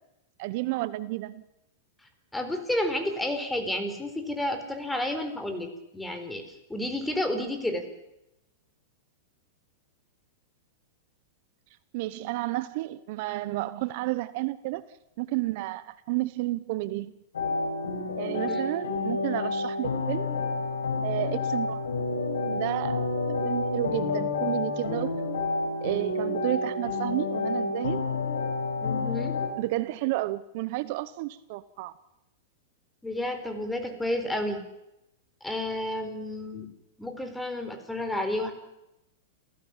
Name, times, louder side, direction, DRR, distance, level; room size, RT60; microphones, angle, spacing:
voice 1, 0.4-1.4 11.9-14.8 15.2-17.1 18.2-20.3 21.0-21.8 22.5-23.1 23.4-25.1 25.8-28.0 29.6-31.9, right 18 dB, 55° right, 16 dB, 0.9 m, -31 dB
voice 2, 2.3-7.9 18.5-18.7 28.8-29.3 33.0-34.6 35.4-36.7 37.0-38.5, left 1 dB, 5° left, 7 dB, 4.2 m, -31 dB
sound 1, 17.3-29.5, left 3 dB, 85° left, 5.9 m, -29 dB
28.5 x 16.0 x 7.4 m, 0.90 s
hypercardioid pair, 120°, 0 cm